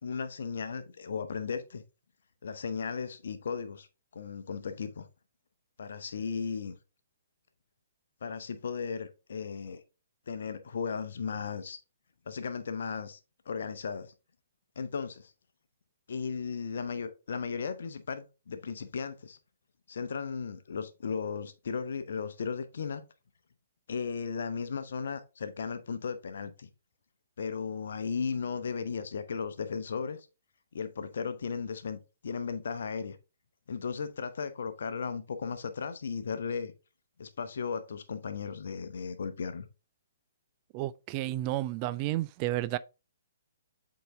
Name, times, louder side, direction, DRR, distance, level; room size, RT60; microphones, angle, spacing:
voice 1, 0.0-1.8 2.4-3.9 4.1-5.1 5.8-6.8 8.2-9.8 10.3-11.8 12.3-13.2 13.5-14.1 14.8-15.3 16.1-19.4 19.9-23.0 23.9-26.7 27.4-30.3 30.7-33.2 33.7-36.7 37.2-39.7, left 5 dB, 55° left, 0.9 m, -36 dB
voice 2, 40.7-42.8, right 16 dB, 30° right, 0.3 m, -31 dB
8.0 x 3.9 x 3.5 m
figure-of-eight pair, 125°, 0 cm